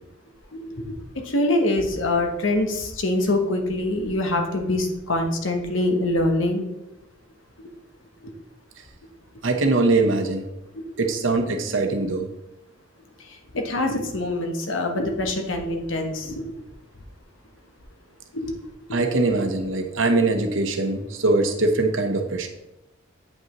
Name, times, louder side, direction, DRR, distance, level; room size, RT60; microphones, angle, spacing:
voice 1, 0.5-6.6 8.2-8.3 10.7-10.8 13.2-16.5 18.3-18.5, left 1 dB, 85° left, 4 dB, 1.1 m, -24 dB
voice 2, 9.4-10.5 11.0-12.3 18.9-22.5, right 3 dB, 85° right, 5 dB, 0.9 m, -22 dB
8.6 x 5.4 x 3.0 m, 0.91 s
head